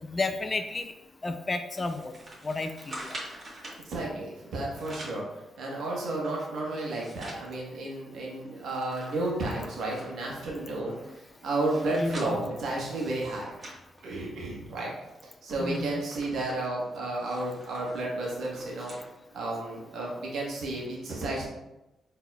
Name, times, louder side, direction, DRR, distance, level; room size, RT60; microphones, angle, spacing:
voice 1, 0.0-0.9 1.2-2.1 2.4-3.2 11.1-11.2 12.0-12.4 15.6-16.0, left 3 dB, 35° left, 7 dB, 0.4 m, -32 dB
sound 1, 1.7-3.8 4.5-5.3 5.7-7.5 7.9-8.0 8.3-10.3 10.9-14.6 15.0-15.2 15.5-19.1 19.5-19.6 20.5-20.6, right 1 dB, 40° right, 1.4 m, -46 dB
voice 2, 3.8-13.5 14.0-14.9 15.4-18.9 19.3-21.5, right 2 dB, 75° right, -4 dB, 1.3 m, -32 dB
4.5 x 3.5 x 2.3 m, 0.95 s
supercardioid pair, 55°, 0 cm